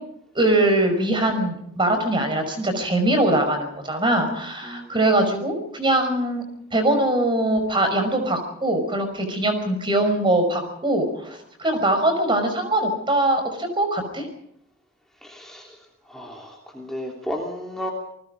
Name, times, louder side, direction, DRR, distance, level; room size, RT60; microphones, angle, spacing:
voice 1, 0.3-6.4 6.7-14.3, right 1 dB, 25° right, 7 dB, 5.5 m, -22 dB
voice 2, 4.6-4.9 15.2-15.8 16.1-17.9, equal, ahead, -1 dB, 3.1 m, -33 dB
28.5 x 20.0 x 5.2 m, 0.76 s
head